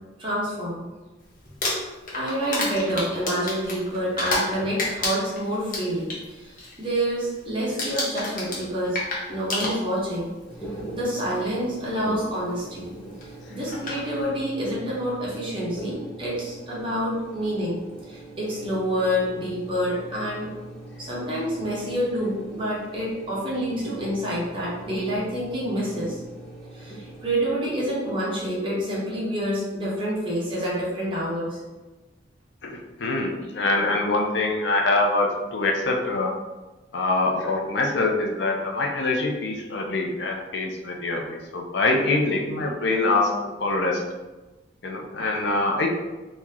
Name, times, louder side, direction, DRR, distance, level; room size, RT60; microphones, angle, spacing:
voice 1, 0.2-0.8 2.1-9.0 9.3-10.3 10.9-12.9 13.5-20.5 21.0-26.2 26.7-31.6, equal, 25° right, -7 dB, 1.1 m, -28 dB
Crumpling crinkling, 1.4-4.5 4.8-6.2 6.6-6.9 7.2-7.5 7.8-10.2 11.1-11.2 13.2-13.3 13.7-14.0, left 2 dB, 45° left, 0.9 m, -29 dB
sound 1, 10.5-27.4, right 2 dB, 5° left, 0.9 m, -41 dB
voice 2, 32.6-36.3 36.9-44.0 44.8-45.9, left 2 dB, 60° left, 1 dB, 0.5 m, -24 dB
3.0 x 2.8 x 3.5 m, 1.2 s
head